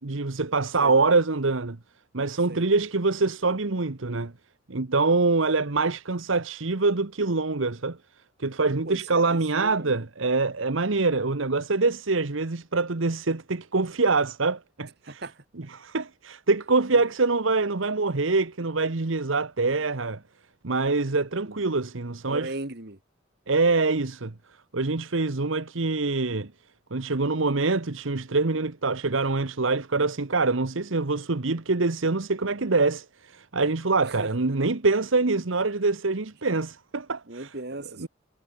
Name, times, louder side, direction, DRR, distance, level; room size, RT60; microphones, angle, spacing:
voice 1, 0.0-1.8 2.1-4.3 4.7-8.0 8.4-15.2 15.7-20.2 20.6-22.5 23.5-24.3 24.7-26.5 26.9-37.5 38.0-38.1, right 3 dB, 70° right, 1.1 m, -25 dB
voice 2, 8.9-10.0 15.0-15.7 16.9-17.0 21.4-21.6 22.3-23.0 34.0-34.5 37.3-38.1, right 2 dB, 50° right, 2.2 m, -38 dB
head